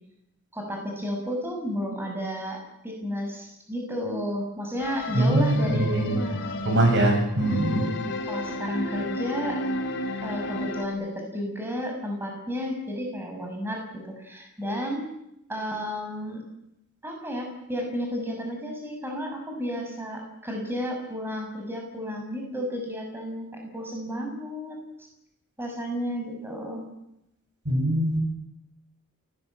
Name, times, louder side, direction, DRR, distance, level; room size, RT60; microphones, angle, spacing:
voice 1, 0.5-6.6 7.5-9.6 10.2-15.1 15.5-16.4 17.0-24.8 25.6-26.8, equal, 10° right, 2 dB, 6.7 m, -32 dB
sound 1, 4.8-10.8, left 2 dB, 55° left, 3.9 m, -32 dB
voice 2, 5.1-6.2 6.6-7.8 27.7-28.2, right 1 dB, 55° right, 4 dB, 7.8 m, -22 dB
29.0 x 20.0 x 8.8 m, 0.83 s
head